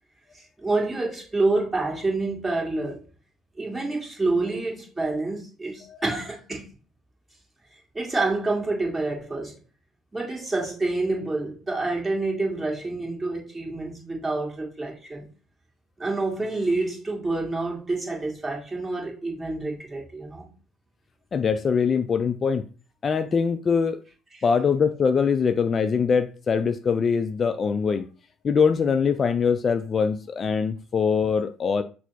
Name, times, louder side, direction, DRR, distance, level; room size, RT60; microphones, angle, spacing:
voice 1, 0.3-3.1 3.6-6.6 7.7-9.5 10.1-15.3 16.0-20.5 24.3-24.4, right 2 dB, 20° right, 1.8 m, -28 dB
voice 2, 21.3-22.6 23.0-24.0 24.4-28.1 28.4-31.8, left 6 dB, 40° left, 0.3 m, -23 dB
6.0 x 2.0 x 4.0 m
figure-of-eight pair, 55°, 0 cm